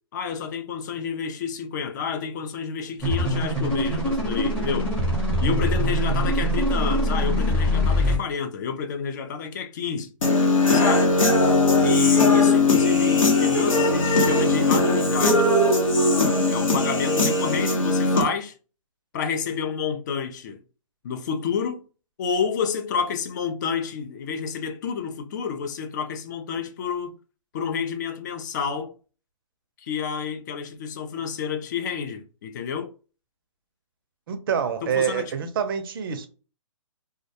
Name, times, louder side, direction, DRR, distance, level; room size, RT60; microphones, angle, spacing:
voice 1, 0.1-5.0 5.4-10.1 10.7-11.1 11.8-15.5 16.5-18.6 19.1-20.6 21.0-21.8 22.2-27.1 27.5-28.9 29.8-32.9 34.8-35.3, left 6 dB, 35° left, 0.4 m, -29 dB
sound 1, 3.0-8.2, equal, 5° left, 0.7 m, -23 dB
Human voice / Guitar, 10.2-18.2, left 2 dB, 80° left, 0.8 m, -19 dB
voice 2, 34.3-36.3, right 7 dB, 45° right, 0.5 m, -26 dB
2.3 x 2.1 x 2.7 m
hypercardioid pair, 145°, 17 cm